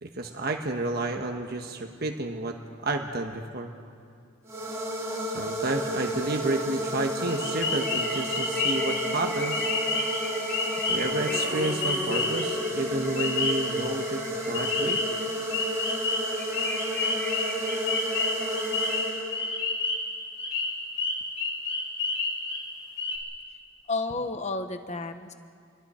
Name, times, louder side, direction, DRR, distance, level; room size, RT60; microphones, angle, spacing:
voice 1, 0.0-3.7 5.2-9.7 10.9-15.0, right 2 dB, 50° right, 3 dB, 1.3 m, -31 dB
sound 1, 4.5-19.7, equal, 15° right, 3.1 m, -32 dB
sound 2, 7.3-9.0 9.5-10.2 10.5-12.5 13.2-13.7 14.5-15.2 15.5-20.1 20.4-22.7 23.0-23.2, left 3 dB, 70° left, 4.4 m, -30 dB
sound 3, 7.3-15.2 15.6-15.7 16.0-16.1 16.3-19.4, left 1 dB, 10° left, 3.3 m, -40 dB
voice 2, 23.9-25.3, left 3 dB, 35° left, 8 dB, 1.0 m, -31 dB
29.5 x 22.5 x 4.4 m, 2.3 s
head